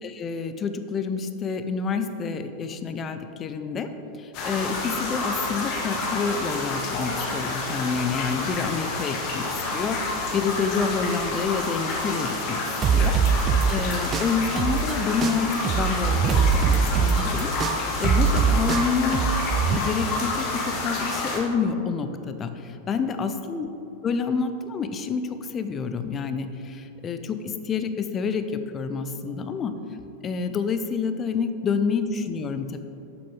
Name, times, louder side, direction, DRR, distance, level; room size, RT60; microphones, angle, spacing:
voice 1, 0.0-3.9 4.2-12.6 12.9-13.1 13.7-15.5 15.7-17.5 17.8-19.3 19.7-23.7 24.0-29.7 30.2-32.8, left 5 dB, 25° left, 9 dB, 0.6 m, -28 dB
sound 1, 4.3-21.4, left 2 dB, 40° left, 1.5 m, -29 dB
sound 2, 12.8-14.9 15.2-19.8, right 6 dB, 25° right, 0.5 m, -22 dB
10.0 x 7.5 x 3.8 m, 3.0 s
figure-of-eight pair, 90°, 0 cm